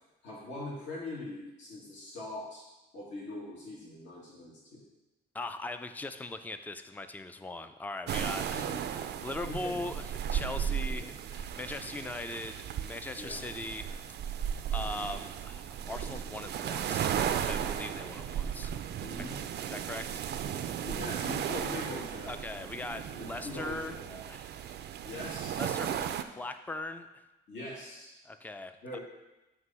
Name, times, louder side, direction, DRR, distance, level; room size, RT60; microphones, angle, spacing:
voice 1, 0.2-2.6 2.9-4.8 8.5-8.8 9.5-9.9 11.0-11.1 13.2-13.4 19.0-19.4 20.8-22.4 23.1-24.2 25.0-26.0 27.5-28.2 28.8-29.0, left 2 dB, 70° left, -6 dB, 1.9 m, -42 dB
voice 2, 5.3-13.9 14.3-14.4 14.7-18.7 19.2-19.3 19.7-20.7 22.3-24.0 24.3-24.7 25.1-25.2 25.6-25.9 26.4-27.2 28.2-29.0, left 2 dB, 10° left, 9 dB, 0.4 m, -40 dB
sound 1, 8.1-26.2, right 9 dB, 60° right, 0.4 m, -35 dB
7.8 x 3.0 x 5.5 m, 1.0 s
cardioid pair, 90°, 20 cm